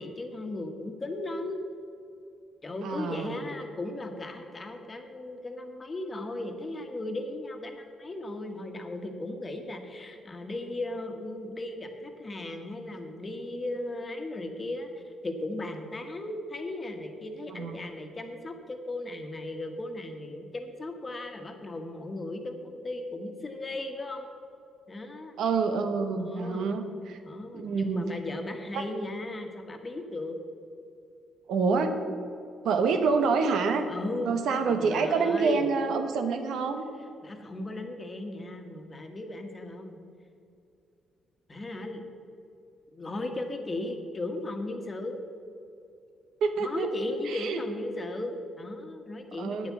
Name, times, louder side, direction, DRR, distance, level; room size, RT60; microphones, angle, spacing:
voice 1, 0.0-1.6 2.6-24.3 24.9-25.4 26.1-26.7 27.2-30.4 33.9-34.4 34.7-35.7 37.2-40.0 41.5-42.0 42.9-45.2 46.6-49.7, left 2 dB, 30° left, 4 dB, 1.4 m, -36 dB
voice 2, 2.8-3.3 17.5-17.8 25.4-27.2 27.5-28.0 28.7-28.8 31.5-32.0 32.6-33.8 34.2-36.8 46.4-46.9 47.3-47.6 49.4-49.7, right 4 dB, 75° right, 6 dB, 1.1 m, -27 dB
8.8 x 8.3 x 7.4 m, 2.6 s
cardioid pair, 90°, 0 cm